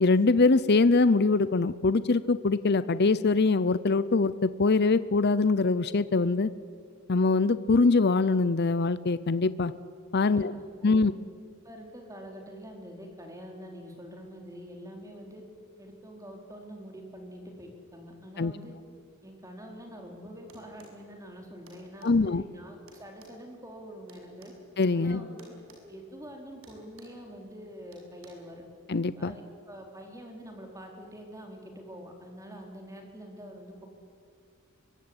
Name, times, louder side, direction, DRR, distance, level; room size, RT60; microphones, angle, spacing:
voice 1, 0.0-6.5 7.1-9.7 10.1-10.5 10.8-11.1 18.4-18.5 22.0-22.4 24.8-25.2 28.9-29.3, left 3 dB, 50° left, 15 dB, 0.7 m, -23 dB
voice 2, 10.2-11.1 11.6-15.4 15.8-18.7 19.2-24.5 24.9-25.5 25.8-28.6 29.1-33.9, equal, 15° right, 2 dB, 4.3 m, -45 dB
sound 1, 20.5-21.0 21.7-22.1 22.9-24.6 25.4-25.8 26.1-26.3 26.6-27.2 27.9-28.3, right 2 dB, 70° right, 7.1 m, -54 dB
25.5 x 23.0 x 9.9 m, 2.2 s
head